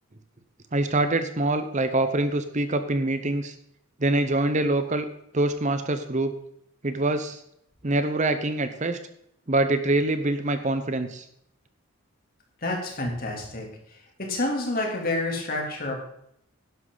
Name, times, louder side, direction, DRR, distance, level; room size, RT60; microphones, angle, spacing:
voice 1, 0.7-3.5 4.0-5.1 5.3-6.3 6.8-7.4 7.8-9.0 9.5-11.2, right 2 dB, 35° right, 9 dB, 0.8 m, -25 dB
voice 2, 12.6-16.0, left 2 dB, 45° left, 0 dB, 3.1 m, -29 dB
11.5 x 11.0 x 4.0 m, 0.73 s
head